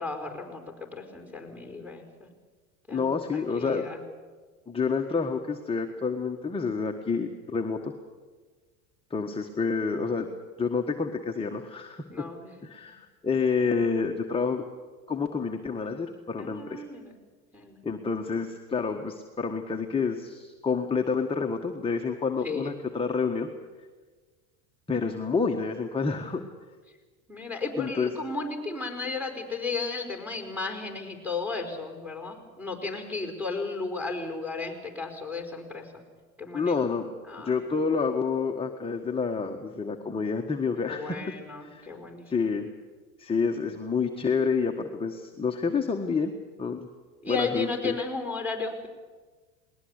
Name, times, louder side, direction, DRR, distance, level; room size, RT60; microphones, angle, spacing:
voice 1, 0.0-2.3 2.9-4.0 12.1-12.7 16.4-17.1 17.5-17.8 22.4-22.8 27.3-36.0 36.4-36.8 37.3-37.6 40.8-42.5 47.2-48.9, left 4 dB, 5° right, 5 dB, 5.0 m, -34 dB
voice 2, 2.9-3.8 4.7-7.9 9.1-10.3 10.6-12.3 12.6-14.7 15.1-16.8 17.8-23.5 24.9-26.4 27.8-28.1 36.5-37.1 37.4-41.9 42.3-42.7 43.2-46.3 46.6-46.9 47.3-47.9, left 5 dB, 10° left, 3 dB, 1.5 m, -28 dB
20.5 x 19.5 x 8.3 m, 1.4 s
hypercardioid pair, 90°, 44 cm